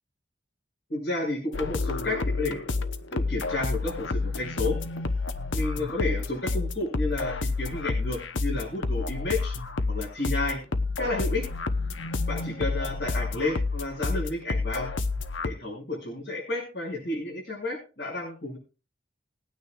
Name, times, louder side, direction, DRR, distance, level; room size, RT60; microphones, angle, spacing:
voice 1, 0.9-2.8 3.1-4.8 5.5-9.5 9.9-10.6 11.0-11.4 12.3-14.9 15.4-18.6, left 2 dB, 65° left, 0 dB, 5.9 m, -31 dB
sound 1, 1.5-15.5, left 3 dB, 85° left, 0.9 m, -29 dB
20.5 x 9.4 x 2.4 m, 0.33 s
head